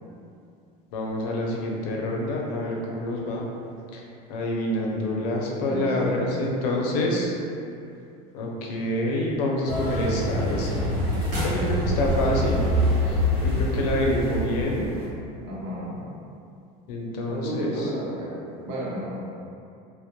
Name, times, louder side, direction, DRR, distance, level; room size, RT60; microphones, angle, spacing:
voice 1, 0.9-3.4 3.9-4.0 4.3-7.3 8.3-10.8 11.3-12.7 13.1-14.9 16.9-17.9, left 1 dB, 80° left, -1 dB, 0.5 m, -27 dB
voice 2, 5.6-6.0 6.7-6.9 11.9-12.2 15.4-16.0 17.3-19.3, right 1 dB, 70° right, -6 dB, 0.7 m, -33 dB
sound 1, 9.7-15.0, equal, 45° right, 0.8 m, -25 dB
2.1 x 2.1 x 2.8 m, 2.5 s
supercardioid pair, 140°, 20 cm